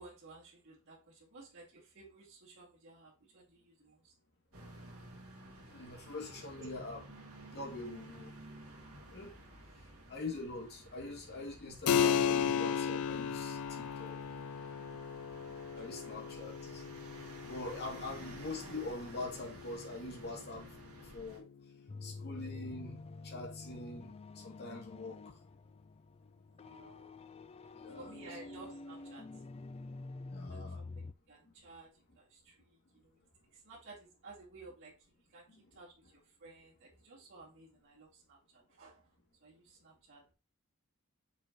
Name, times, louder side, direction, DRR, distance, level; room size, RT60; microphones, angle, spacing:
voice 1, 0.0-4.1 6.6-6.7 10.0-10.1 15.8-16.2 26.5-27.2 27.9-29.3 30.4-30.7 31.3-33.2 33.5-39.0 39.4-40.3, right 3 dB, 55° right, 2.6 m, -55 dB
sound 1, 4.5-21.4, right 1 dB, 70° right, 2.2 m, -53 dB
voice 2, 5.7-7.0 7.5-8.3 9.1-9.3 10.1-14.2 15.7-16.8 17.5-20.7 21.1-21.5 22.0-25.2 27.7-28.1 30.3-30.8 35.5-35.6, left 2 dB, 50° left, 2.8 m, -44 dB
Keyboard (musical), 11.9-22.1, left 7 dB, 85° left, 0.5 m, -36 dB
sound 2, 21.9-31.1, left 3 dB, 25° left, 0.4 m, -48 dB
6.6 x 6.5 x 3.1 m
head